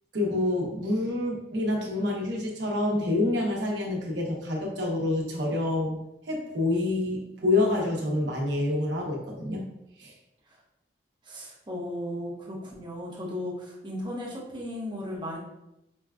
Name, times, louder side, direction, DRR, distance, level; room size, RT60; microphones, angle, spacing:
voice 1, 0.1-6.0 6.3-9.6 10.0-10.1, left 2 dB, 80° right, -1 dB, 0.9 m, -27 dB
voice 2, 11.2-15.4, left 1 dB, 25° right, -4 dB, 0.8 m, -35 dB
5.1 x 2.3 x 2.3 m, 0.86 s
head